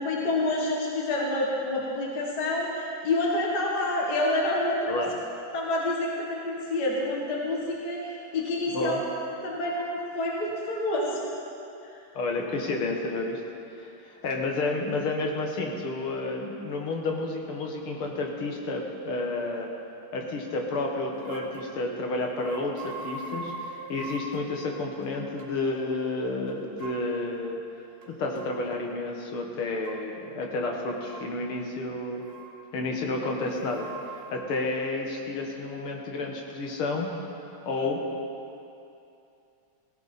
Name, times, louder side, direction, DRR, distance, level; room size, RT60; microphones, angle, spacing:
voice 1, 0.0-4.9 5.5-9.0 9.4-11.2, left 2 dB, 50° left, -3 dB, 2.1 m, -28 dB
voice 2, 4.9-5.2 8.7-9.0 12.1-13.4 13.8-19.7 20.1-27.6 28.1-32.2 32.7-37.1 37.4-38.0, left 2 dB, 90° left, 1 dB, 2.5 m, -31 dB
sound 1, 21.1-21.8 22.3-24.5 25.0-25.1 25.4-25.5 26.5-27.0 28.0-28.5 29.8-30.0 30.9-31.3 32.1-32.6 33.0-34.3, right 3 dB, 80° right, 2.1 m, -42 dB
18.0 x 16.0 x 4.4 m, 2.7 s
omnidirectional pair, 2.3 m